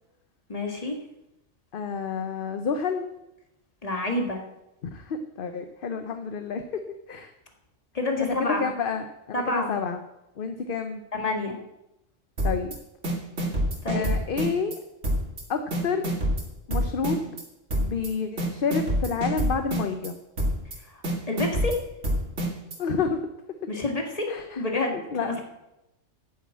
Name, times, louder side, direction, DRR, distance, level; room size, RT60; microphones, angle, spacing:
voice 1, 0.5-1.0 3.8-4.4 7.9-8.7 9.3-9.7 11.1-11.6 13.8-14.2 20.9-21.8 23.7-24.3 24.5-25.4, left 2 dB, 30° left, 2 dB, 1.9 m, -28 dB
voice 2, 1.7-3.1 4.9-7.3 8.2-10.0 10.4-11.0 12.4-12.8 13.9-14.7 15.5-16.1 16.7-17.4 17.8-20.2 22.8-23.3 24.3-24.6 24.9-25.3, left 5 dB, 50° left, 8 dB, 0.9 m, -29 dB
sound 1, 12.4-12.8 13.0-14.8 15.0-15.4 15.7-17.4 17.7-18.1 18.4-20.1 20.4-20.8 21.0-22.8, equal, 60° right, 2.4 m, -27 dB
9.0 x 7.5 x 8.4 m, 0.90 s
omnidirectional pair, 1.4 m